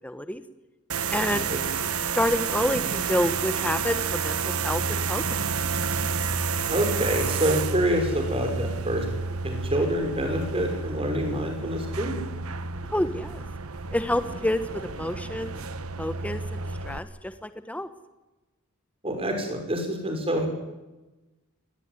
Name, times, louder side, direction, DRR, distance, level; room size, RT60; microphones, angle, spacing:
voice 1, 0.0-0.4 1.1-1.5 2.1-5.2 12.9-13.4 13.9-15.5 16.0-16.6 16.8-17.9, left 1 dB, 5° left, 10 dB, 1.0 m, -28 dB
sound 1, 0.9-17.0, right 5 dB, 90° right, 1.3 m, -30 dB
voice 2, 1.2-1.6 6.7-9.0 9.4-12.2 19.0-20.5, right 1 dB, 25° right, 4 dB, 5.9 m, -27 dB
22.5 x 19.0 x 9.8 m, 1.1 s
head